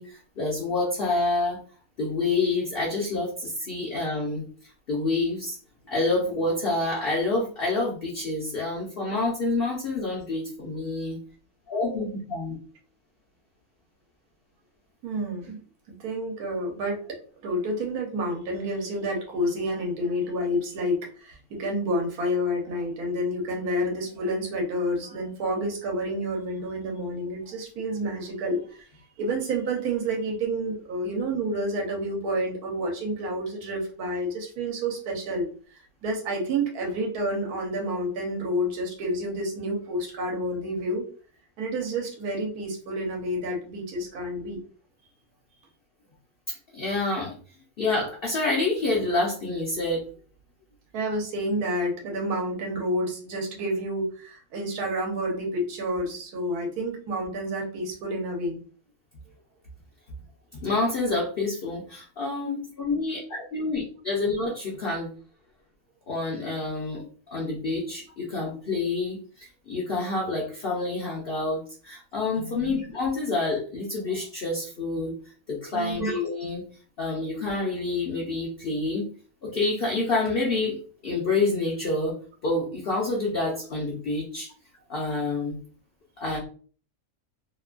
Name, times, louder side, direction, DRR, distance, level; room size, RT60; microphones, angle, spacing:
voice 1, 0.0-1.6 2.0-4.4 4.9-5.6 5.9-11.2 11.7-12.6 46.5-47.4 47.8-50.0 60.5-65.1 66.1-75.1 75.5-76.7 77.0-79.1 79.4-80.8 81.0-82.1 82.4-84.5 84.9-85.6 86.2-86.4, left 3 dB, 55° left, -3 dB, 0.7 m, -28 dB
voice 2, 15.0-15.6 15.9-28.8 29.2-35.5 36.0-41.0 41.6-44.6 50.9-58.6 72.4-72.6 75.7-76.1, equal, 80° right, 0 dB, 1.3 m, -29 dB
2.9 x 2.2 x 2.4 m, 0.41 s
omnidirectional pair, 1.6 m